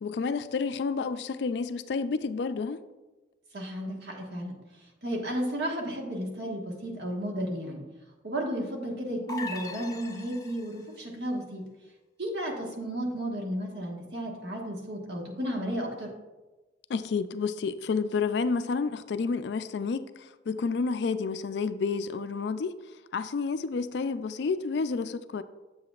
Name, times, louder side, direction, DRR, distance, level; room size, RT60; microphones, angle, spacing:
voice 1, 0.0-2.8 16.9-22.8 23.1-25.4, left 4 dB, 65° left, 0.3 m, -30 dB
voice 2, 3.5-4.6 5.0-7.8 8.2-11.6 12.2-16.1, equal, 65° right, 1.4 m, -33 dB
sound 1, 9.3-10.9, left 2 dB, 20° left, 0.6 m, -39 dB
7.7 x 7.6 x 2.4 m
head